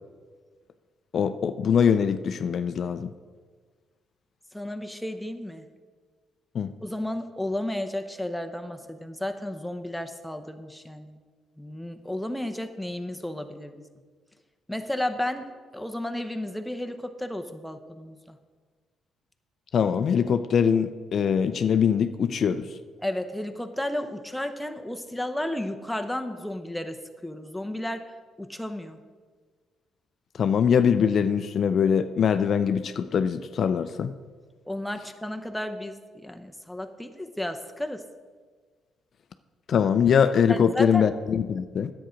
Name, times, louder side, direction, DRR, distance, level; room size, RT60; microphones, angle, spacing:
voice 1, 1.1-3.1 6.5-6.7 19.7-22.6 30.4-34.1 39.7-41.9, left 7 dB, 60° left, 11 dB, 0.4 m, -23 dB
voice 2, 4.5-5.6 6.8-11.2 11.6-13.9 14.7-18.4 23.0-28.1 28.4-29.0 34.7-38.0 40.5-41.1, left 1 dB, 5° left, 6 dB, 0.8 m, -33 dB
10.0 x 8.0 x 5.0 m, 1.5 s
cardioid pair, 90°, 0 cm